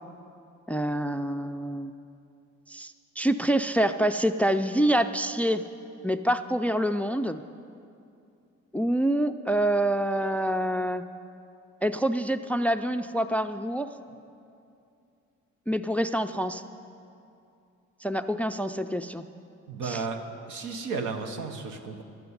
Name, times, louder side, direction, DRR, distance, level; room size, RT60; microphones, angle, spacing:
voice 1, 0.7-1.9 2.7-5.6 6.0-7.4 8.7-11.0 11.8-13.9 15.7-16.6 18.0-19.2 19.8-20.0, right 1 dB, 5° left, 11 dB, 0.3 m, -26 dB
voice 2, 19.7-22.0, right 4 dB, 85° right, 6 dB, 1.1 m, -34 dB
12.0 x 6.9 x 9.6 m, 2.6 s
cardioid pair, 90°, 30 cm